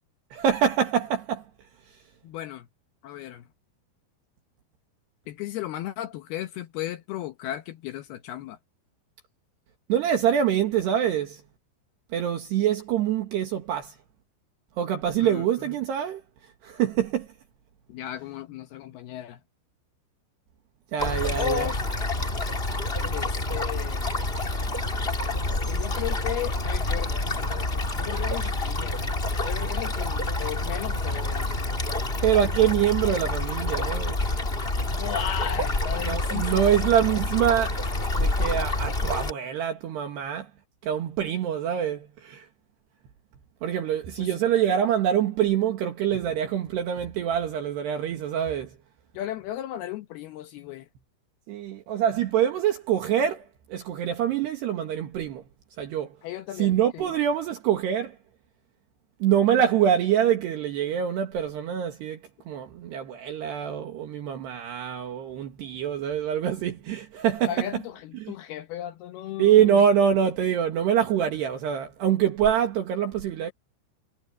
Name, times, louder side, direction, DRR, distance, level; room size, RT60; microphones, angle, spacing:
voice 1, 0.3-1.4 9.9-11.4 12.1-14.0 14.8-16.2 16.6-17.3 20.9-21.7 32.2-34.2 36.1-40.5 40.8-42.5 43.6-48.8 51.5-55.4 55.8-56.2 56.6-58.2 59.2-62.2 62.5-67.7 68.2-68.3 69.4-73.5, right 9 dB, 65° right, 3.8 m, -25 dB
voice 2, 2.2-2.7 3.0-3.5 5.3-8.6 15.2-15.7 17.9-19.4 21.4-21.8 23.0-24.1 25.7-29.1 29.4-31.8 34.8-36.9 44.2-44.4 49.1-50.9 56.2-57.1 67.4-69.8, left 12 dB, 75° left, 2.5 m, -35 dB
sound 1, 21.0-39.3, left 2 dB, 20° left, 1.6 m, -28 dB
omnidirectional pair, 5.4 m